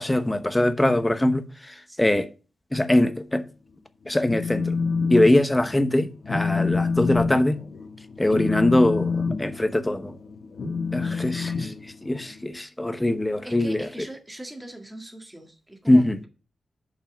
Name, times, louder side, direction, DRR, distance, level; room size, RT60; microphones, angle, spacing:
voice 1, 0.0-2.3 2.7-3.4 4.1-4.8 5.1-7.6 8.2-10.2 10.9-13.9 15.9-16.2, left 1 dB, 10° left, 0.9 m, -22 dB
Telephone, 4.1-5.3 5.6-5.9 6.2-12.4, left 4 dB, 65° left, 1.6 m, -27 dB
voice 2, 11.2-11.5 13.4-16.3, right 1 dB, 10° right, 1.8 m, -41 dB
7.2 x 5.5 x 6.2 m
wide cardioid pair, 110°, 0 cm